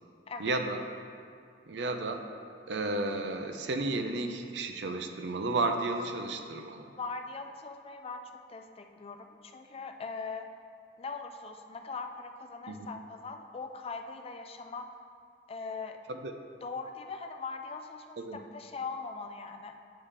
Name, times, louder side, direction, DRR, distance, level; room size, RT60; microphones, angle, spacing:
voice 1, 0.4-0.8 1.7-2.2 2.7-6.9 12.7-12.9 16.1-16.3 18.2-18.4, right 2 dB, 80° right, 6 dB, 0.6 m, -32 dB
voice 2, 7.0-10.5 11.0-14.9 15.5-16.0 16.6-19.8, left 4 dB, 35° left, 6 dB, 0.4 m, -41 dB
8.9 x 5.6 x 3.3 m, 2.2 s
head